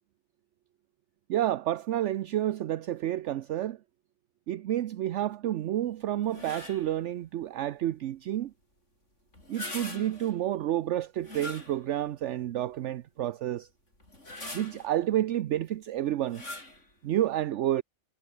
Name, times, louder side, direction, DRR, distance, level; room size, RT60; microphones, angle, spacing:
voice 1, 1.3-3.8 4.5-8.5 9.5-13.7 14.5-16.4 17.0-17.8, right 12 dB, 70° right, 0.9 m, -30 dB
sound 1, 6.3-7.0 9.3-10.4 11.2-12.1 12.7-12.8 14.0-15.0 16.3-16.8, left 2 dB, 65° left, 6.8 m, -42 dB
omnidirectional pair, 1.4 m